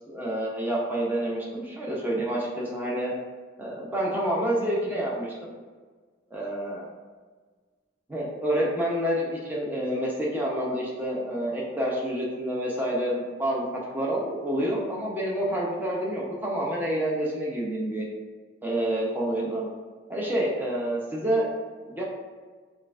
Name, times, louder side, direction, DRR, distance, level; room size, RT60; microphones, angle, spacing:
voice 1, 0.1-3.1 3.6-5.5 6.3-6.8 8.1-18.1 18.6-19.7 20.1-21.5 21.8-22.0, right 1 dB, 10° right, -4 dB, 0.7 m, -28 dB
6.3 x 2.4 x 2.5 m, 1.5 s
head